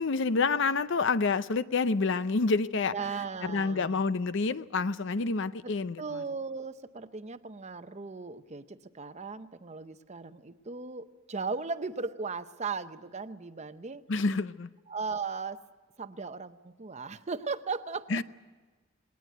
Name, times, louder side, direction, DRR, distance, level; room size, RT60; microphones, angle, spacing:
voice 1, 0.0-2.9 3.4-6.0 14.1-14.7 18.1-18.2, left 4 dB, 60° left, 14 dB, 0.6 m, -28 dB
voice 2, 2.9-4.0 5.6-14.1 14.9-15.6 16.0-18.2, right 4 dB, 35° right, 11 dB, 0.7 m, -37 dB
20.0 x 19.0 x 9.2 m, 1.3 s
head